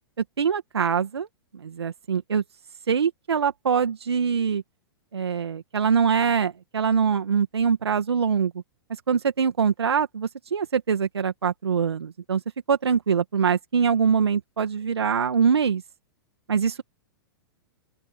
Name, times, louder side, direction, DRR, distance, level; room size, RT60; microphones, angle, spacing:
voice 1, 0.4-1.3 1.6-2.4 2.9-4.6 5.1-8.5 9.1-12.4 12.7-15.8 16.5-16.8, right 6 dB, 80° right, 2.1 m, -23 dB
open air
hypercardioid pair, 110°, 13 cm